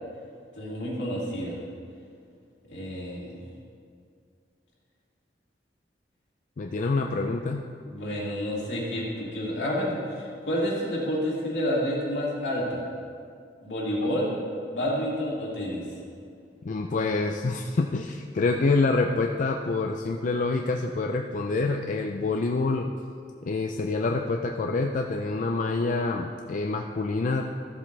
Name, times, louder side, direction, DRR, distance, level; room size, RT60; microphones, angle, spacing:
voice 1, 0.6-1.6 2.7-3.4 7.8-12.8 13.6-14.3 14.7-15.8, equal, 80° left, -5 dB, 2.5 m, -29 dB
voice 2, 6.6-7.6 16.6-22.9 23.5-27.4, left 3 dB, 45° left, 3 dB, 0.4 m, -26 dB
13.5 x 7.4 x 3.2 m, 2.3 s
head